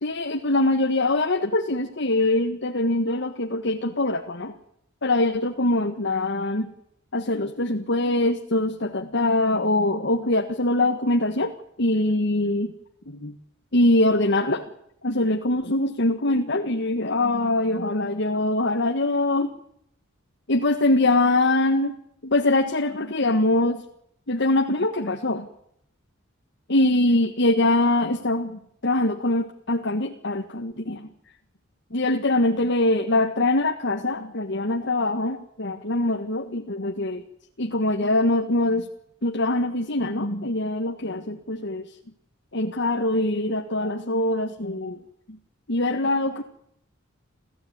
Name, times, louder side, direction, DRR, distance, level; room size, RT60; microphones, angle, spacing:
voice 1, 0.0-4.5 5.0-6.7 7.1-11.5 11.8-12.7 13.1-13.3 13.7-14.6 15.0-19.5 20.5-21.9 22.2-23.8 24.3-25.5 26.7-31.1 31.9-37.2 37.6-38.9 39.2-41.8 42.5-45.0 45.7-46.4, left 2 dB, 60° left, 5 dB, 1.6 m, -23 dB
28.5 x 15.5 x 9.5 m, 0.75 s
head